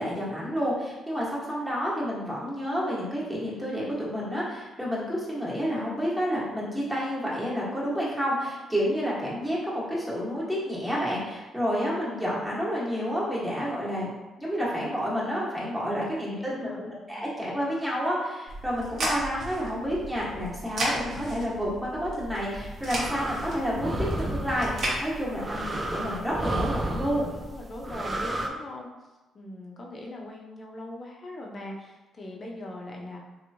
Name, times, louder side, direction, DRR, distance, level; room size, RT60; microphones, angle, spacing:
voice 1, 0.0-14.1 14.4-27.3, equal, 10° right, -7 dB, 1.2 m, -30 dB
voice 2, 16.2-16.8 17.1-17.3 27.4-28.9 29.3-33.2, left 1 dB, 40° left, -1 dB, 0.7 m, -40 dB
sound 1, 18.5-25.0, right 1 dB, 65° right, 1.0 m, -34 dB
sound 2, 22.4-28.5, right 1 dB, 25° right, 0.4 m, -32 dB
3.1 x 2.9 x 2.7 m, 1.1 s
cardioid pair, 90°, 0 cm